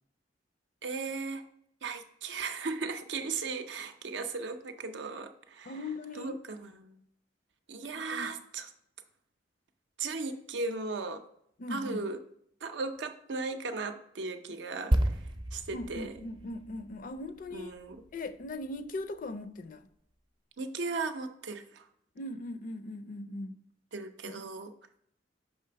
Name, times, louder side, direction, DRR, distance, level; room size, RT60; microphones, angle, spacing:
voice 1, 0.8-1.5 1.8-5.7 6.1-7.0 7.7-8.7 10.0-11.2 11.7-12.2 12.6-15.2 15.5-16.2 17.5-18.0 20.6-21.9 23.9-24.7, right 4 dB, 70° right, 8 dB, 0.6 m, -37 dB
voice 2, 5.7-6.4 7.9-8.3 11.6-12.0 15.7-17.7 18.1-19.9 22.2-23.6 24.3-24.4, left 2 dB, 45° left, 10 dB, 0.4 m, -39 dB
sound 1, 14.9-18.6 18.8-19.0, right 1 dB, 25° right, 0.5 m, -32 dB
5.6 x 3.4 x 5.7 m, 0.71 s
head